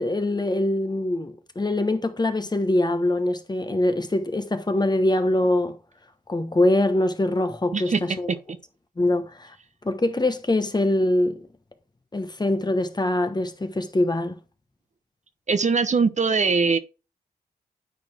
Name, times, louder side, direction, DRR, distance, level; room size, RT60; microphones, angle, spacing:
voice 1, 0.0-5.8 6.3-8.3 9.0-9.5 9.8-11.4 12.1-14.4, left 1 dB, 25° left, 1.2 m, -23 dB
voice 2, 7.7-8.4 15.5-16.8, right 4 dB, 45° right, 0.9 m, -22 dB
9.5 x 4.3 x 3.4 m
cardioid pair, 50°, 17 cm